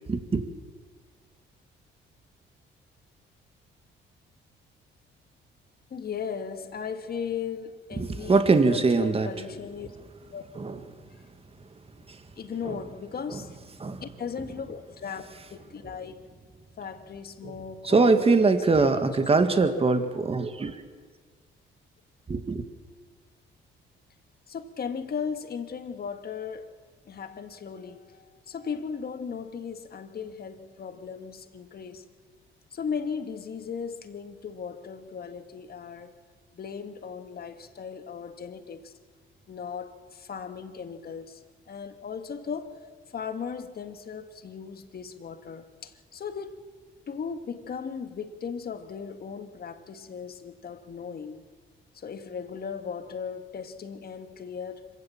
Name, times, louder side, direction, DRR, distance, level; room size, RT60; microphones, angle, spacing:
voice 1, 0.1-0.4 8.0-9.3 10.6-10.8 12.1-12.2 12.7-12.8 13.3-13.4 13.8-14.0 17.4-17.5 17.8-20.8 22.3-22.6, right 3 dB, 30° right, 2.0 m, -23 dB
voice 2, 5.9-9.9 10.3-10.4 12.4-13.6 14.0-16.3 16.8-19.2 24.5-26.8 27.1-32.0 32.7-36.1 36.5-38.9 39.5-42.8 43.1-46.6 47.1-51.4 51.9-54.9, left 6 dB, 50° left, 1.9 m, -37 dB
26.0 x 16.0 x 7.3 m
cardioid pair, 90°, 20 cm